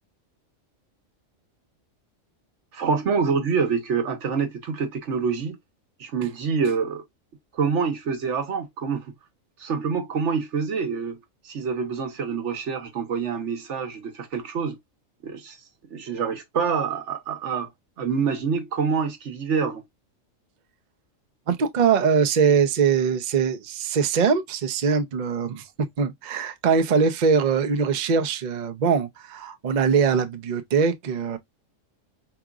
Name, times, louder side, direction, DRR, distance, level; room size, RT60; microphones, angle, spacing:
voice 1, 2.7-5.6 6.0-7.0 7.5-9.1 9.6-11.2 11.4-14.8 15.2-15.6 15.9-17.7 18.0-19.8, right 5 dB, 65° right, 1.2 m, -26 dB
voice 2, 21.5-25.6 26.0-31.4, right 6 dB, 45° right, 0.6 m, -22 dB
4.8 x 2.9 x 2.3 m
omnidirectional pair, 1.4 m